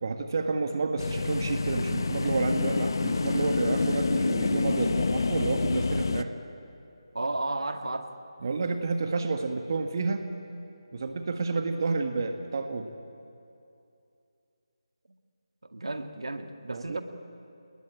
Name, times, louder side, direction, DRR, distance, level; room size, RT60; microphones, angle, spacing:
voice 1, 0.0-6.3 8.4-10.3 10.9-12.9 16.7-17.0, right 4 dB, 45° right, 6 dB, 1.6 m, -30 dB
sound 1, 1.0-6.2, left 4 dB, 50° left, 1.0 m, -28 dB
voice 2, 7.1-8.1 15.6-17.0, right 2 dB, 75° right, 7 dB, 2.0 m, -33 dB
29.0 x 20.5 x 9.1 m, 2.6 s
figure-of-eight pair, 160°, 3 cm